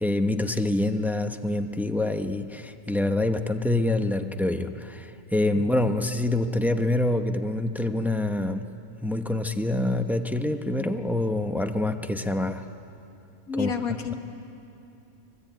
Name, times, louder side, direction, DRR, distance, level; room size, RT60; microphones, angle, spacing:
voice 1, 0.0-8.7 9.0-12.6 13.6-13.7, left 1 dB, ahead, 6 dB, 0.5 m, -26 dB
voice 2, 13.5-14.1, left 6 dB, 70° left, 7 dB, 1.7 m, -28 dB
24.5 x 20.5 x 9.1 m, 2.7 s
omnidirectional pair, 1.6 m